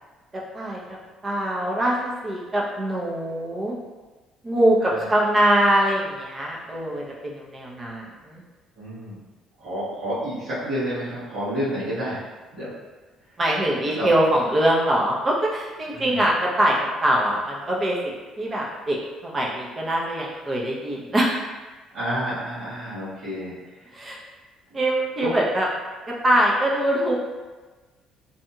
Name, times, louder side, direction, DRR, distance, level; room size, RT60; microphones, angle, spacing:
voice 1, 0.5-1.0 1.2-3.8 4.4-8.4 13.4-16.7 17.0-19.0 19.2-21.3 23.9-24.2 24.7-25.7 26.2-27.1, right 1 dB, 30° right, -3 dB, 0.7 m, -23 dB
voice 2, 8.8-9.2 9.6-12.2 12.5-12.7 13.9-14.1 15.9-16.3 21.9-23.5 25.2-25.3, equal, 70° right, -12 dB, 1.2 m, -29 dB
2.7 x 2.6 x 2.3 m, 1.3 s
supercardioid pair, 65°, 0 cm